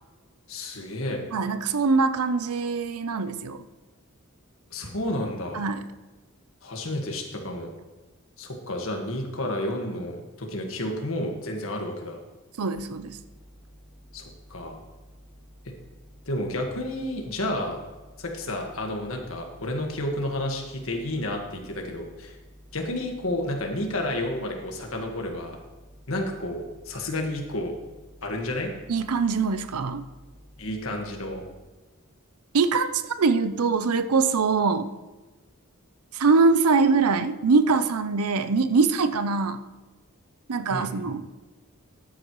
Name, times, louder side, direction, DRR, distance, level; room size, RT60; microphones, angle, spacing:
voice 1, 0.5-1.2 4.7-5.6 6.6-7.7 8.4-12.2 14.1-14.8 16.3-17.8 18.2-22.4 22.7-25.6 26.1-27.7 28.2-28.7 30.6-31.4 40.7-41.1, left 1 dB, 65° left, 2 dB, 1.6 m, -31 dB
voice 2, 1.3-3.6 5.5-5.8 12.6-13.2 28.9-30.0 32.5-34.9 36.1-39.6 40.5-41.3, right 4 dB, 90° right, 12 dB, 0.6 m, -23 dB
sound 1, 12.7-31.3, equal, 15° right, 1.5 m, -52 dB
13.5 x 8.8 x 3.1 m, 1.2 s
head